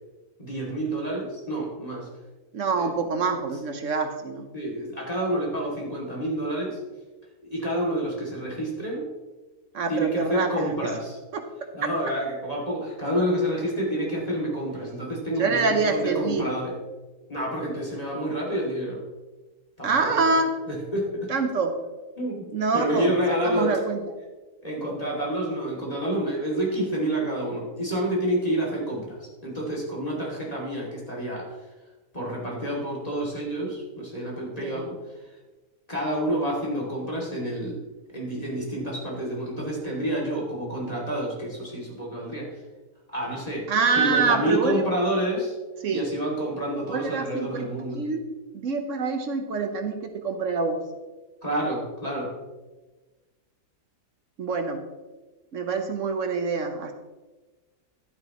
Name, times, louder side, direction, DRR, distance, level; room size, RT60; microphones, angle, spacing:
voice 1, 0.4-2.1 2.7-2.9 4.5-6.8 7.5-9.1 9.9-11.2 11.7-16.7 17.3-19.0 19.8-20.4 20.7-21.3 22.2-22.5 22.7-23.7 24.6-31.5 32.1-35.0 35.9-37.8 38.1-42.5 43.1-43.7 43.9-45.6 45.9-48.0 51.4-52.3, right 1 dB, 25° left, -4 dB, 2.5 m, -28 dB
voice 2, 2.5-4.5 9.7-10.9 11.3-11.4 11.8-11.9 15.4-16.6 19.8-20.5 21.3-21.7 22.5-23.1 23.4-24.0 34.6-34.9 43.7-44.8 45.8-46.1 46.7-48.2 48.5-50.8 54.4-54.8 55.5-56.9, right 4 dB, 55° right, 6 dB, 1.1 m, -26 dB
11.0 x 9.7 x 3.0 m, 1.2 s
omnidirectional pair, 1.7 m